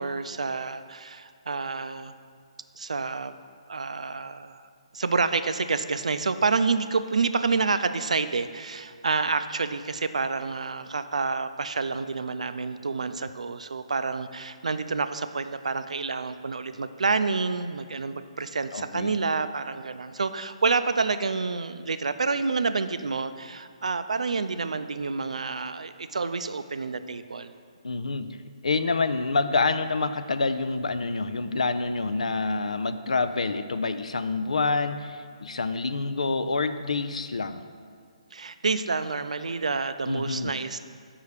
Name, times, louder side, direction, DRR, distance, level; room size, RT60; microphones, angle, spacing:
voice 1, 0.0-2.1 2.8-3.3 3.7-4.6 4.9-27.5 38.3-40.8, right 4 dB, 80° right, 11 dB, 0.4 m, -28 dB
voice 2, 18.7-19.2 27.8-28.4 28.6-37.7 40.1-40.5, left 3 dB, 80° left, 11 dB, 0.4 m, -27 dB
6.8 x 5.5 x 4.8 m, 2.2 s
hypercardioid pair, 145°, 4 cm